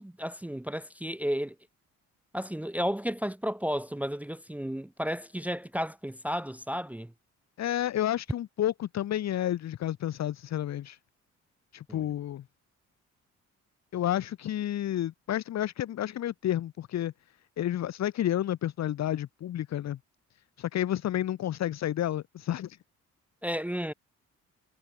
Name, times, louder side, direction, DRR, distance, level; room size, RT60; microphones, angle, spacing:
voice 1, 0.0-1.5 2.3-7.1 11.9-12.0 23.4-23.9, equal, 5° right, 0.9 m, -33 dB
voice 2, 7.6-11.0 11.7-12.4 13.9-17.1 17.6-20.0 20.6-22.8, left 12 dB, 60° left, 1.1 m, -30 dB
cardioid pair, 90°, 30 cm